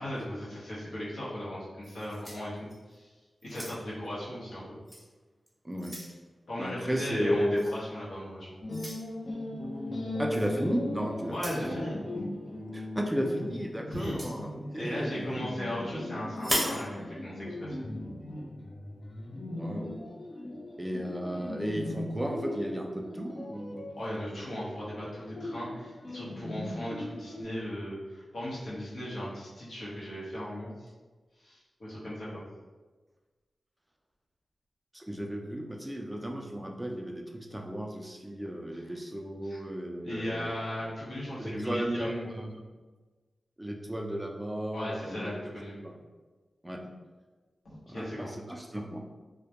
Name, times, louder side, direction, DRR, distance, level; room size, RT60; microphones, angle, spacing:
voice 1, 0.0-2.5 2.9-3.1 3.4-4.8 6.5-8.5 11.3-12.0 13.9-14.2 14.7-17.9 23.9-30.9 31.4-32.4 39.4-39.6 40.0-42.2 44.7-45.8 47.6-48.3, equal, 75° left, -8 dB, 0.8 m, -37 dB
sound 1, 1.8-3.0 3.4-4.1 4.9-5.0 5.5-6.2 7.6-7.8 8.7-9.0 10.3-10.5 11.3-11.7 13.9-14.4 16.3-16.8, equal, 10° left, 0.8 m, -36 dB
voice 2, 5.6-6.0 6.6-7.7 10.2-11.7 12.7-15.4 19.5-20.1 20.8-23.9 34.9-40.5 41.4-42.5 43.6-45.3 45.8-45.9 46.6-46.9 47.9-49.0, equal, 10° right, 1 dB, 0.3 m, -34 dB
sound 2, 8.6-27.4, left 1 dB, 50° left, 0.5 m, -39 dB
2.1 x 2.1 x 2.8 m, 1.3 s
cardioid pair, 40°, 0 cm